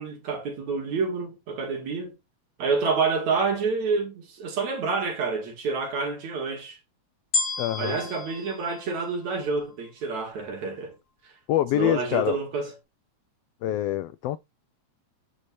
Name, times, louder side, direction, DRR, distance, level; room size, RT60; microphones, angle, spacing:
voice 1, 0.0-2.1 2.6-6.8 7.8-11.0 11.7-12.7, right 4 dB, 70° right, 3.5 m, -28 dB
sound 1, 7.3-9.7 10.4-10.5, left 3 dB, 40° left, 2.0 m, -31 dB
voice 2, 7.6-8.0 11.5-12.4 13.6-14.4, left 13 dB, 90° left, 1.3 m, -25 dB
10.0 x 4.7 x 4.3 m
omnidirectional pair, 3.4 m